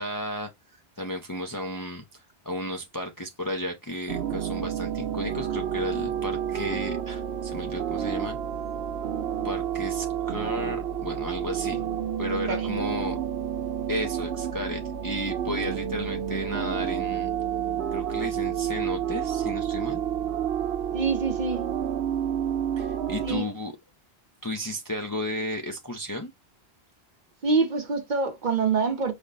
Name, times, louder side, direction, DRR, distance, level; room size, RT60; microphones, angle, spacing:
voice 1, 0.0-8.4 9.4-11.8 12.2-13.2 13.9-17.3 17.9-20.0 22.8-23.7 24.4-26.3, left 1 dB, 25° left, 0.5 m, -33 dB
sound 1, 4.1-23.4, right 9 dB, 80° right, 0.9 m, -30 dB
voice 2, 20.9-21.7 23.2-23.5 27.4-29.1, right 4 dB, 50° right, 0.9 m, -26 dB
5.0 x 2.1 x 3.9 m
omnidirectional pair, 1.1 m